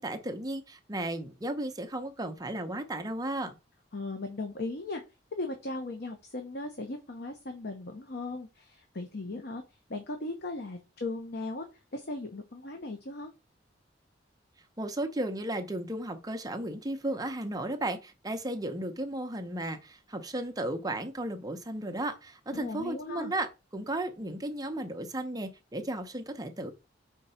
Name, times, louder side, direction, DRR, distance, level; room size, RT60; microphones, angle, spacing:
voice 1, 0.0-3.6 14.8-23.5 23.7-26.7, right 1 dB, 20° right, 0.7 m, -34 dB
voice 2, 3.9-5.0 5.4-9.6 9.9-11.7 11.9-13.3 22.5-23.3, left 2 dB, 65° left, 0.9 m, -37 dB
4.4 x 3.8 x 5.6 m
head